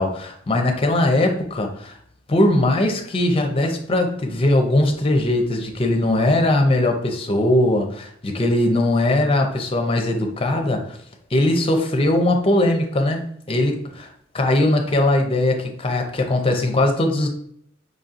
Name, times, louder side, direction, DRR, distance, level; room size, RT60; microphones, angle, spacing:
voice 1, 0.0-2.0 2.3-11.0 11.3-14.1 14.3-17.3, left 1 dB, 30° left, 3 dB, 0.5 m, -20 dB
5.1 x 2.7 x 2.5 m, 0.67 s
head